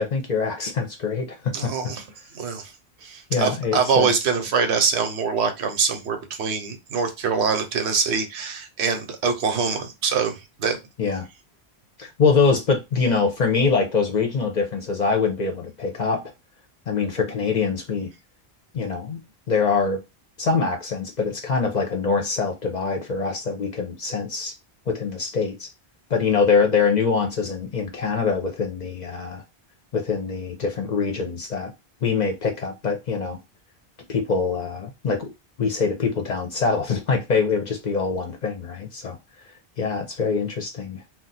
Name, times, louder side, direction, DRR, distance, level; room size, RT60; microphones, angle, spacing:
voice 1, 0.0-1.7 3.3-4.1 11.0-11.3 12.0-16.2 16.9-18.1 18.7-19.2 19.5-20.0 20.4-24.5 24.9-25.7 26.1-29.4 29.9-31.7 32.0-33.4 34.1-35.3 35.6-39.2 39.8-41.1, left 5 dB, 50° left, 0.6 m, -24 dB
voice 2, 1.5-2.0 2.3-2.7 3.0-10.8, right 5 dB, 85° right, 1.0 m, -24 dB
2.4 x 2.2 x 3.9 m
omnidirectional pair, 1.1 m